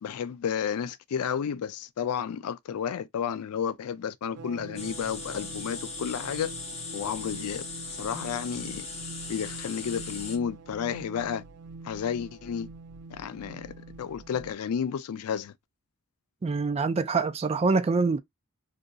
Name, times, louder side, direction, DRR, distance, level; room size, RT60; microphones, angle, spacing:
voice 1, 0.0-6.5 6.9-7.7 8.0-8.9 9.3-11.4 11.8-12.7 13.1-15.5, left 7 dB, 80° left, 0.4 m, -32 dB
sound 1, 4.3-14.5, right 3 dB, 85° right, 0.5 m, -44 dB
sound 2, 4.8-10.4, left 4 dB, 30° left, 0.9 m, -39 dB
voice 2, 16.4-18.2, right 4 dB, 25° right, 0.3 m, -25 dB
2.6 x 2.3 x 3.8 m
head